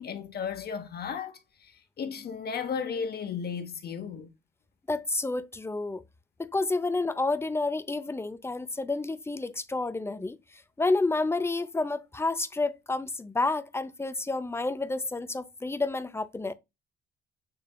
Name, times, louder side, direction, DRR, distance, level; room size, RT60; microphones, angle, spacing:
voice 1, 0.0-4.3, left 6 dB, 55° left, 1.1 m, -35 dB
voice 2, 4.9-6.0 6.4-10.4 10.8-16.5, left 3 dB, 10° left, 0.6 m, -29 dB
6.9 x 3.2 x 2.2 m
cardioid pair, 90°, 20 cm